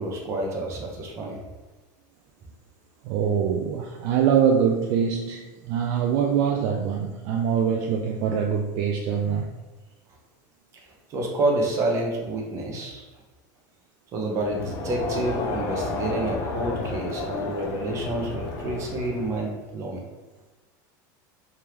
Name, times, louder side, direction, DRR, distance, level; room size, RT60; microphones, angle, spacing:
voice 1, 0.0-1.4 10.7-13.0 14.1-20.0, right 2 dB, 30° right, 0 dB, 0.8 m, -28 dB
voice 2, 3.0-9.5, right 7 dB, 50° right, 2 dB, 0.3 m, -24 dB
Crowd, 14.4-19.5, left 3 dB, 40° left, 0.6 m, -31 dB
3.5 x 3.3 x 2.9 m, 1.2 s
supercardioid pair, 165°, 10 cm